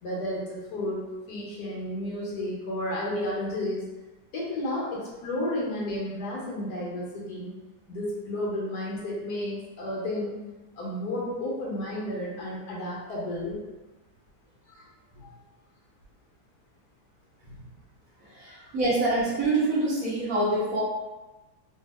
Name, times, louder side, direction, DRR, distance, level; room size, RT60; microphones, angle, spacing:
voice 1, 0.0-3.9 4.3-7.5 7.9-10.4 10.8-13.6 14.7-14.8 15.1-15.3 17.4-17.6 18.6-18.7, left 1 dB, 75° left, -5 dB, 1.3 m, -32 dB
voice 2, 18.4-20.8, right 2 dB, 60° right, -7 dB, 1.2 m, -25 dB
3.3 x 2.4 x 2.4 m, 1.1 s
omnidirectional pair, 1.8 m